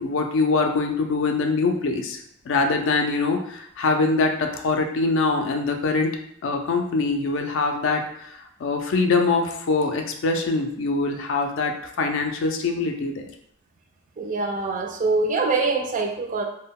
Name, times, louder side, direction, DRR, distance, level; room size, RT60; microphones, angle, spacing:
voice 1, 0.0-2.2 2.5-13.2, left 3 dB, 60° left, 4 dB, 0.4 m, -23 dB
voice 2, 14.2-16.4, right 3 dB, 35° right, 2 dB, 0.3 m, -24 dB
2.1 x 2.1 x 3.5 m, 0.73 s
head